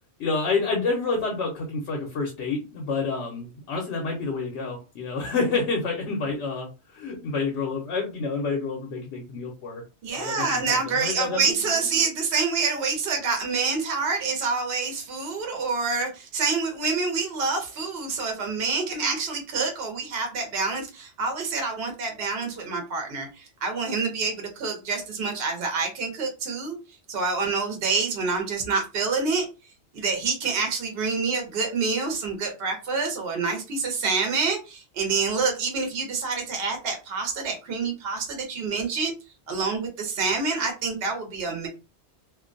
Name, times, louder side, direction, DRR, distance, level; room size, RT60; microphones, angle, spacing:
voice 1, 0.2-9.8 10.1-11.5, left 4 dB, 75° left, 0 dB, 0.9 m, -28 dB
voice 2, 10.0-26.8 27.1-29.5 29.9-39.1 39.5-41.7, right 4 dB, 60° right, 3 dB, 0.9 m, -27 dB
2.5 x 2.1 x 2.5 m, 0.29 s
omnidirectional pair, 1.2 m